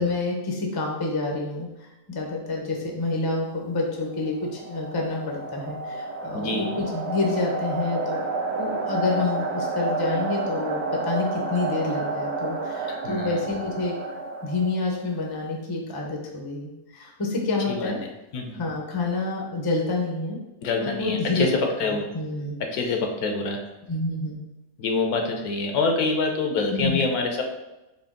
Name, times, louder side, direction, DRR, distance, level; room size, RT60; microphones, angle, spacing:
voice 1, 0.0-8.2 8.6-13.9 14.4-18.0 18.5-20.4 20.8-21.5 21.8-22.6 23.9-24.4 26.7-27.1, left 3 dB, 25° left, 0 dB, 0.5 m, -28 dB
sound 1, 4.2-15.1, right 3 dB, 85° right, 1.2 m, -30 dB
voice 2, 6.3-6.7 12.9-13.4 17.8-17.9 18.3-18.6 20.6-21.5 21.8-22.1 22.7-23.6 24.8-27.4, left 3 dB, 75° left, 3 dB, 1.2 m, -26 dB
4.3 x 3.2 x 3.7 m, 1.0 s
omnidirectional pair, 1.6 m